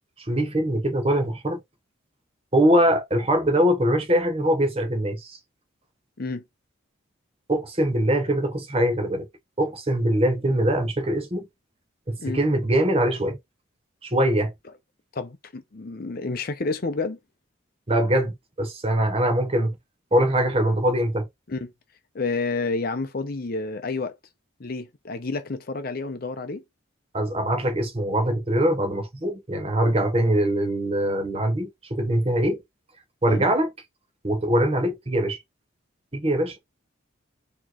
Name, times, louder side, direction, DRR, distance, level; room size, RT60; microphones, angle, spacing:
voice 1, 0.2-1.6 2.5-5.4 7.5-9.3 9.6-11.5 12.1-13.4 14.0-14.5 17.9-19.7 20.1-21.3 27.1-32.6 33.2-33.7 34.2-35.4 36.1-36.6, right 1 dB, 30° right, 0.9 m, -22 dB
voice 2, 15.1-17.2 21.5-21.7 22.1-24.2 24.6-26.6 33.3-33.4, left 3 dB, 45° left, 0.6 m, -30 dB
4.3 x 3.0 x 3.0 m
head